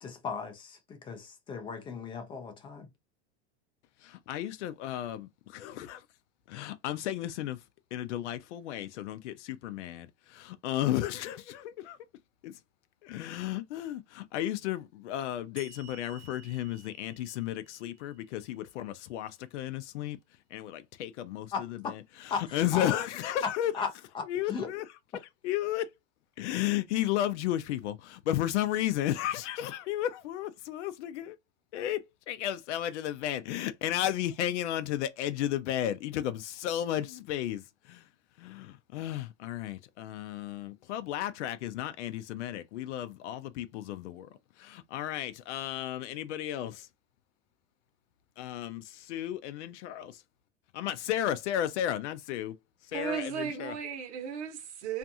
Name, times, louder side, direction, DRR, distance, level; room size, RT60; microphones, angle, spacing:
voice 1, 0.0-2.9 21.5-21.9 22.3-23.0 23.4-23.9 24.1-24.7, left 5 dB, 15° left, 0.3 m, -36 dB
voice 2, 4.0-6.0 6.5-7.6 7.9-12.0 12.4-12.6 13.0-20.2 20.5-23.7 24.3-24.8 25.4-25.9 26.4-31.4 31.7-38.1 38.4-44.3 44.6-46.9 48.4-50.2 50.7-52.5 52.9-53.7, left 12 dB, 85° left, 0.5 m, -33 dB
sound 1, 15.6-18.9, right 6 dB, 25° right, 0.6 m, -54 dB
voice 3, 52.9-55.0, right 7 dB, 75° right, 1.0 m, -35 dB
2.5 x 2.3 x 2.6 m
supercardioid pair, 145°, 34 cm